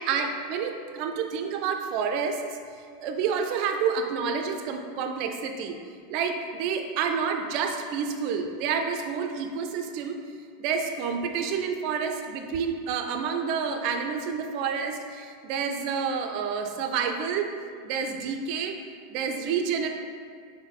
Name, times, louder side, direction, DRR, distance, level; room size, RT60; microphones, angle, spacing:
voice 1, 0.0-2.4 2.7-5.8 6.1-10.2 10.6-17.5 17.8-18.8 19.1-19.9, right 6 dB, 50° right, 5 dB, 0.4 m, -29 dB
4.7 x 2.6 x 3.3 m, 2.2 s
hypercardioid pair, 90°, 0 cm